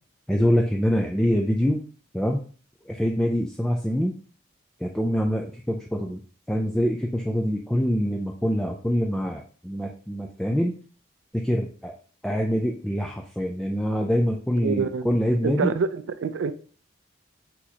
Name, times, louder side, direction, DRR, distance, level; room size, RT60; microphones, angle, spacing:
voice 1, 0.3-1.8 2.1-2.4 2.9-4.1 4.8-6.2 6.5-10.7 11.3-11.9 12.2-15.7, equal, 5° left, 0.3 m, -25 dB
voice 2, 14.6-15.1 15.4-16.5, right 5 dB, 75° right, 0.4 m, -26 dB
6.2 x 2.9 x 2.8 m
head